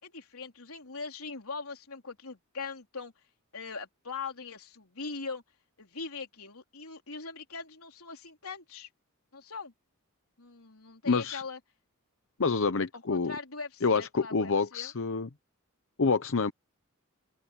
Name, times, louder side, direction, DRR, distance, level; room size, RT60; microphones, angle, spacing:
voice 1, 0.0-3.1 3.5-5.4 5.8-8.9 9.3-9.7 10.4-11.6 12.9-14.9, left 4 dB, 85° left, 3.7 m, -41 dB
voice 2, 11.1-11.4 12.4-13.4 13.8-15.3 16.0-16.5, left 4 dB, 65° left, 0.8 m, -27 dB
open air
head